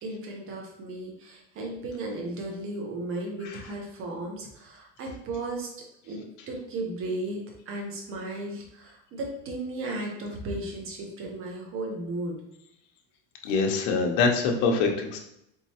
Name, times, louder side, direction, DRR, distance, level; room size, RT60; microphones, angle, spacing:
voice 1, 0.0-5.7 6.0-7.4 7.7-12.4, right 2 dB, 40° right, 0 dB, 1.2 m, -35 dB
voice 2, 13.4-15.2, left 4 dB, 65° left, 2 dB, 0.9 m, -24 dB
3.9 x 3.8 x 2.9 m, 0.81 s
supercardioid pair, 135°, 32 cm